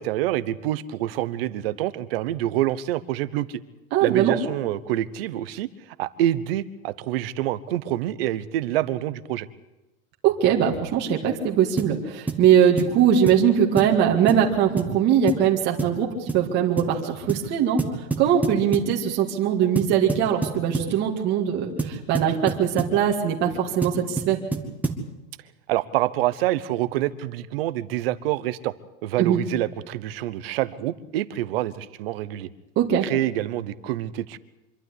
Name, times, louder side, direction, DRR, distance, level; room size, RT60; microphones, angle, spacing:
voice 1, 0.0-3.6 4.0-5.7 6.0-9.5 25.7-28.7 29.0-32.5 33.0-34.4, right 13 dB, 45° right, 16 dB, 1.0 m, -26 dB
voice 2, 3.9-4.3 10.2-17.8 18.2-24.4 29.2-29.4 32.8-33.1, right 8 dB, 25° right, 0 dB, 2.1 m, -21 dB
sound 1, 11.8-12.0 12.3-12.5 12.8-13.0 13.3-13.4 13.8-14.0 14.3-14.5 14.8-14.9 15.3-15.5 15.8-16.0 16.3-16.5 16.8-16.9 17.3-17.5 17.8-18.9 19.8-21.0 21.8-23.0 23.8-25.1, right 3 dB, 5° right, 1.2 m, -28 dB
25.5 x 12.5 x 9.8 m, 1.0 s
supercardioid pair, 175°, 42 cm